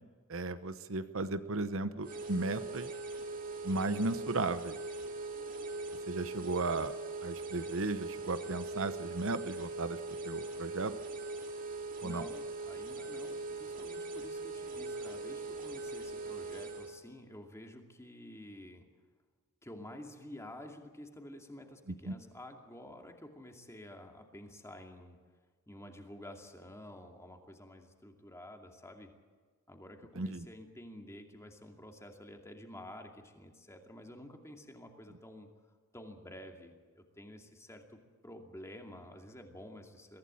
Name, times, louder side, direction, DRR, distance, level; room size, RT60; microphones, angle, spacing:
voice 1, 0.3-2.9 3.6-4.8 6.1-6.9 7.2-10.0 10.2-10.9 12.0-12.2 22.0-22.1 30.2-30.5, right 3 dB, 65° right, 11 dB, 0.9 m, -35 dB
sound 1, 2.0-16.9, right 3 dB, 40° right, 2.5 m, -41 dB
voice 2, 12.0-18.9 19.6-25.2 25.7-29.1 29.7-35.5 35.9-40.2, left 1 dB, 15° left, 3 dB, 2.5 m, -50 dB
23.0 x 15.5 x 8.7 m, 1.5 s
head